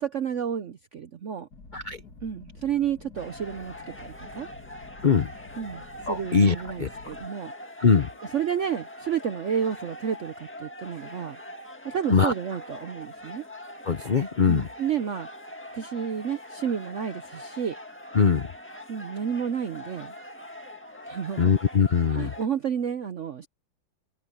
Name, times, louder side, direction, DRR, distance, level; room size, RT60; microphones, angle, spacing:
voice 1, 0.0-1.5 2.2-4.5 5.6-7.5 8.3-11.4 11.8-13.4 14.5-15.3 15.7-17.8 18.9-20.1 21.1-21.5 22.1-23.5, right 8 dB, 70° right, 0.7 m, -31 dB
sound 1, 1.5-7.3, left 3 dB, 50° left, 3.4 m, -48 dB
sound 2, 3.2-22.5, left 1 dB, 5° left, 1.4 m, -43 dB
voice 2, 6.1-7.1 7.8-8.1 12.1-12.3 13.8-14.7 18.1-18.5 21.4-22.3, left 5 dB, 80° left, 0.4 m, -22 dB
omnidirectional pair, 2.1 m